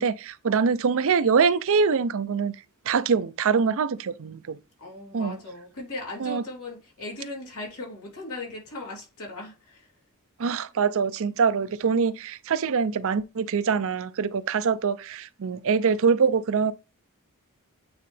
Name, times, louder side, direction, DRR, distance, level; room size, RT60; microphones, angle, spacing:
voice 1, 0.0-2.6 2.9-4.6 5.1-5.4 6.2-6.4 10.4-16.7, right 5 dB, 65° right, 0.5 m, -24 dB
voice 2, 4.8-9.9, left 2 dB, 80° left, 3.0 m, -38 dB
8.8 x 3.7 x 3.3 m
head